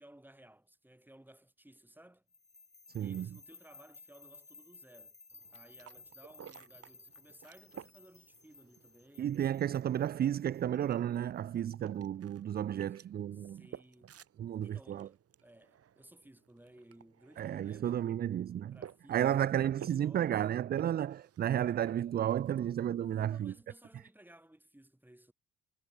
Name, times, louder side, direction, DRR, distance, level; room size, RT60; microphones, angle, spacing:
voice 1, 0.0-2.2 3.0-5.2 5.5-9.4 12.9-13.1 13.3-14.1 14.6-18.0 18.7-20.5 23.0-25.3, right 1 dB, 5° right, 4.1 m, -59 dB
sound 1, 2.3-11.4, left 4 dB, 20° left, 1.9 m, -58 dB
voice 2, 2.9-3.3 9.2-13.6 14.4-15.1 17.4-18.8 19.1-23.5, right 10 dB, 35° right, 0.4 m, -32 dB
sound 2, 5.3-23.1, right 9 dB, 50° right, 1.8 m, -54 dB
hypercardioid pair, 55°, 30 cm